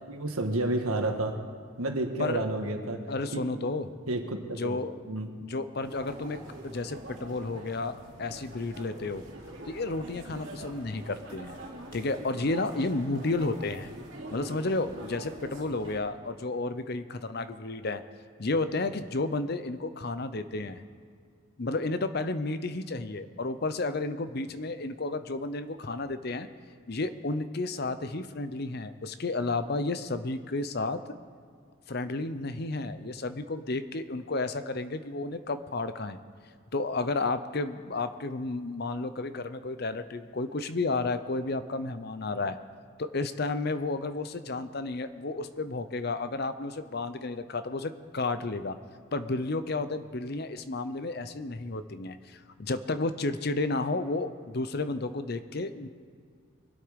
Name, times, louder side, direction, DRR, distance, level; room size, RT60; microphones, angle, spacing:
voice 1, 0.1-1.4 1.8-3.0 4.1-4.8 5.0-5.3, right 2 dB, 90° right, 4 dB, 1.6 m, -30 dB
voice 2, 3.1-3.9 4.5-4.9 5.4-9.2 9.7-11.6 11.9-13.9 14.3-18.0 18.4-20.8 21.6-26.5 26.9-31.1 31.9-36.2 36.7-42.6 43.0-48.8 49.1-55.9, left 3 dB, 50° left, 11 dB, 0.7 m, -32 dB
sound 1, 5.8-16.0, right 1 dB, 65° right, 2.5 m, -44 dB
24.0 x 8.4 x 5.2 m, 2.1 s
head